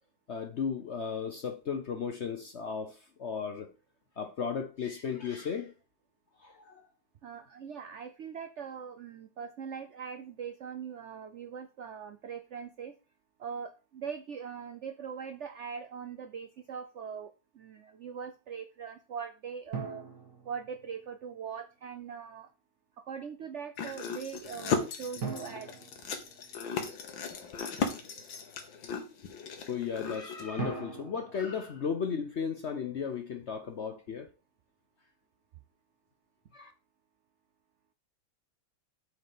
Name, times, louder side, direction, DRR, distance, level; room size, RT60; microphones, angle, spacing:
voice 1, 0.3-3.7 4.2-5.7 6.4-6.8 29.7-34.3 36.5-36.7, left 6 dB, 60° left, 0.7 m, -35 dB
voice 2, 7.2-12.9 13.4-20.0 20.4-22.5 23.0-25.8, right 7 dB, 90° right, 0.6 m, -41 dB
sound 1, 19.7-21.3 25.2-27.1 30.6-32.8, right 5 dB, 50° right, 2.4 m, -42 dB
sound 2, 23.8-30.5, left 6 dB, 90° left, 1.9 m, -36 dB
8.1 x 4.4 x 5.2 m
omnidirectional pair, 2.0 m